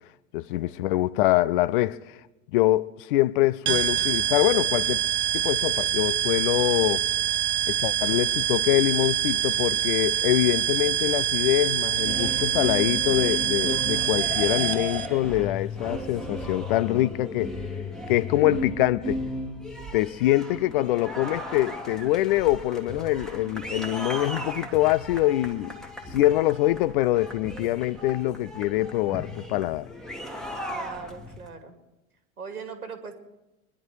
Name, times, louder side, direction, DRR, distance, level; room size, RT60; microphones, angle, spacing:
voice 1, 0.3-2.2 2.5-5.0 5.3-7.1 7.7-17.6 18.1-19.2 19.9-25.7 26.1-29.9, left 16 dB, 40° left, 0.5 m, -24 dB
sound 1, 3.7-15.1, right 10 dB, 25° right, 0.8 m, -25 dB
sound 2, 11.9-31.5, left 1 dB, ahead, 1.5 m, -35 dB
voice 2, 30.7-31.8 32.4-33.1, right 5 dB, 80° right, 2.4 m, -40 dB
25.0 x 10.5 x 4.8 m
figure-of-eight pair, 90°, 44 cm